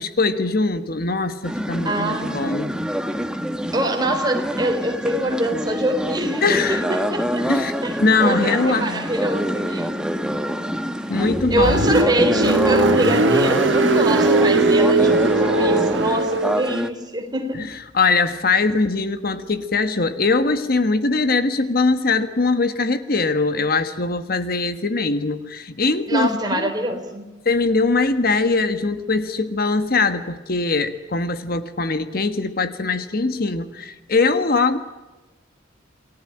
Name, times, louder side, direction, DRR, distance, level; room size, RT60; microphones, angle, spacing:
voice 1, 0.0-2.8 6.4-6.8 7.5-9.1 11.1-11.9 17.5-26.7 27.4-34.8, left 3 dB, 50° left, 11 dB, 1.4 m, -21 dB
sound 1, 1.4-16.9, equal, 5° right, 1.3 m, -25 dB
voice 2, 1.8-2.3 3.7-7.4 7.7-7.9 8.2-10.7 11.5-17.7 26.1-27.2, right 1 dB, 20° right, 4 dB, 4.0 m, -24 dB
Car, 11.2-16.7, right 3 dB, 85° right, 2.2 m, -20 dB
29.0 x 18.5 x 8.8 m, 1.2 s
head